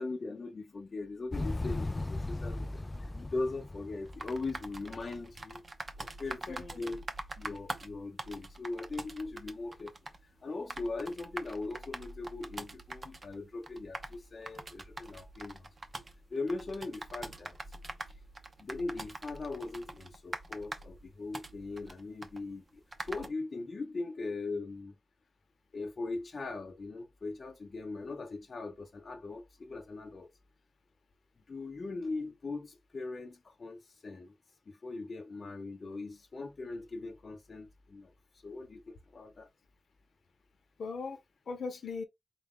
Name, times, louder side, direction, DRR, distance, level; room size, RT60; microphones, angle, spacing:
voice 1, 0.0-2.8 3.1-5.6 6.0-7.1 7.4-9.9 10.2-15.7 16.3-17.6 18.6-24.9 25.7-30.3 31.5-34.3 34.7-38.1 38.4-39.5, left 3 dB, 45° left, 0.7 m, -40 dB
Motorcycle, 1.3-5.2, left 2 dB, 20° left, 0.3 m, -37 dB
sound 1, 4.1-23.3, right 2 dB, 35° right, 0.6 m, -45 dB
voice 2, 6.5-7.0 40.8-42.0, left 4 dB, 70° left, 1.0 m, -40 dB
4.0 x 2.5 x 3.6 m
wide cardioid pair, 100°, 0 cm